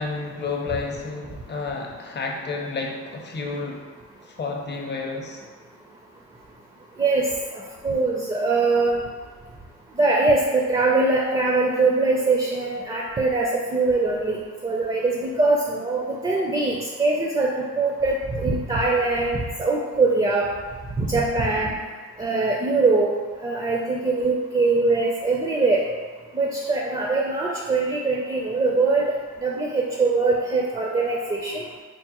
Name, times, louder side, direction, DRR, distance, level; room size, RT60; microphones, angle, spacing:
voice 1, 0.0-3.8 4.2-5.4, left 4 dB, 35° left, 1 dB, 0.5 m, -31 dB
voice 2, 7.5-9.0 10.0-20.5 21.0-21.8 22.2-23.1 23.4-25.8 26.3-29.1 29.4-31.6, right 3 dB, 20° right, -1 dB, 0.4 m, -22 dB
4.7 x 2.1 x 2.9 m, 1.5 s
cardioid pair, 90°, 30 cm